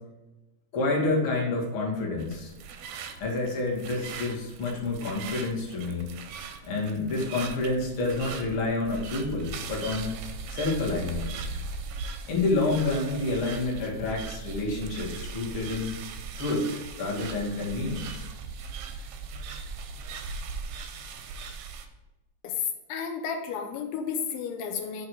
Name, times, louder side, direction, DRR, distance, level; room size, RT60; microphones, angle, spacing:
voice 1, 0.7-2.5 3.2-6.1 6.6-10.2 10.5-11.3 12.3-15.9 16.4-18.3, left 2 dB, 50° left, -3 dB, 1.9 m, -28 dB
sound 1, 2.2-21.9, right 4 dB, 90° right, 2.2 m, -39 dB
voice 2, 22.4-25.1, left 7 dB, 85° left, 3 dB, 2.2 m, -32 dB
7.9 x 2.8 x 6.0 m, 1.0 s
omnidirectional pair, 3.7 m